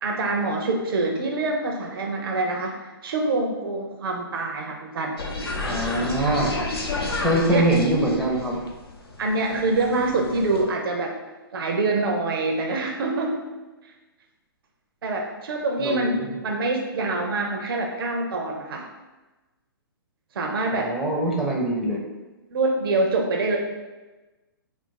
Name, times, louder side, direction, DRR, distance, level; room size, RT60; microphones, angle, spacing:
voice 1, 0.0-5.1 7.5-7.7 9.2-11.2 11.5-13.4 15.0-16.2 16.4-18.8 20.4-20.9 22.5-23.6, right 2 dB, 70° right, 1 dB, 0.5 m, -25 dB
sound 1, 5.2-10.6, left 2 dB, 85° left, 0.6 m, -31 dB
voice 2, 5.6-6.6 7.2-8.6 15.8-16.4 20.7-22.0, right 1 dB, ahead, -3 dB, 0.5 m, -23 dB
2.5 x 2.3 x 3.7 m, 1.2 s
hypercardioid pair, 125°, 13 cm